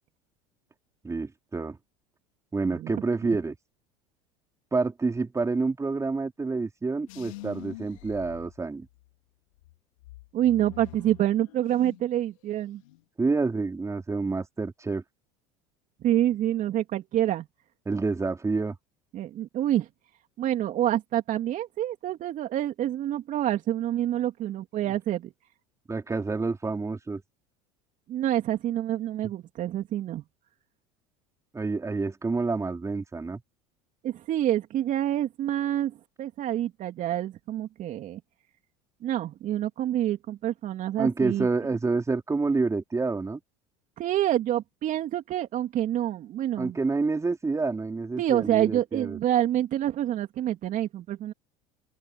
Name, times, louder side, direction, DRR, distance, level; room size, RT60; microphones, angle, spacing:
voice 1, 1.0-1.8 2.5-3.6 4.7-8.9 13.2-15.0 17.8-18.8 25.9-27.2 31.5-33.4 41.0-43.4 46.6-49.2, right 3 dB, 15° right, 4.7 m, -28 dB
sound 1, 7.1-9.1 9.6-12.2 12.5-13.0, left 19 dB, 80° left, 5.1 m, -46 dB
voice 2, 10.3-12.8 16.0-17.5 19.1-19.9 20.4-25.3 28.1-30.2 34.0-38.2 39.0-41.5 44.0-46.7 48.2-51.3, right 12 dB, 50° right, 2.9 m, -27 dB
open air
hypercardioid pair, 85°, 17 cm